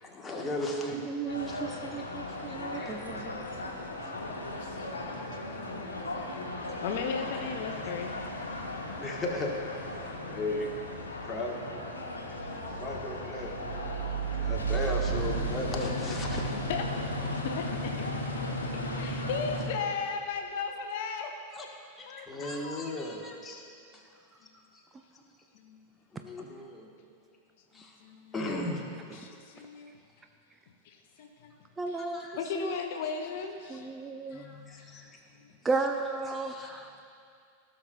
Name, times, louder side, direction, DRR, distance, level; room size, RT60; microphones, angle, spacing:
voice 1, 0.0-3.4 6.2-6.4 9.0-10.7 11.2-11.6 12.7-13.5 14.3-16.5 21.5-21.7 22.0-23.6 23.9-24.0 24.7-24.8 25.1-25.2 26.1-26.9 27.7-27.9 28.3-28.9 29.3-29.4 32.0-32.4 34.3-35.2 36.2-37.0, left 2 dB, 15° left, 0 dB, 1.2 m, -37 dB
voice 2, 1.1-3.5 22.2-22.6 31.8-32.8 33.7-34.4 34.8-35.0 35.6-36.9, right 4 dB, 15° right, 5 dB, 0.4 m, -35 dB
sound 1, 1.3-19.7, left 2 dB, 75° left, 0.9 m, -36 dB
voice 3, 2.2-2.6 3.2-3.4 3.8-8.2 8.8-9.0 12.4-12.8 16.5-16.8 17.2-18.2 18.9-21.3 22.1-23.0 24.4-24.5 25.5-25.8 27.7-28.3 29.1-29.9 30.8-31.5 31.9-32.0 32.3-33.9 34.3-34.5, left 5 dB, 50° left, 4 dB, 0.6 m, -38 dB
sound 2, 2.4-19.1 19.9-20.4, right 8 dB, 65° right, 1.6 m, -39 dB
16.5 x 6.5 x 2.3 m, 2.3 s
figure-of-eight pair, 90°, 0 cm